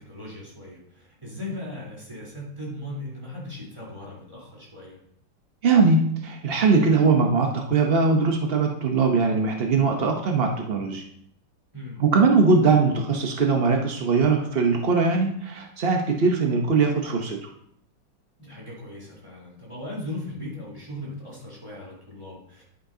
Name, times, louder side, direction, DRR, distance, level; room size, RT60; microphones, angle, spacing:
voice 1, 0.0-5.0 11.7-12.1 18.4-22.6, left 1 dB, 15° right, -5 dB, 3.4 m, -38 dB
voice 2, 5.6-11.0 12.0-17.5, right 4 dB, 80° right, 2 dB, 0.5 m, -21 dB
10.5 x 9.6 x 2.7 m, 0.69 s
omnidirectional pair, 2.3 m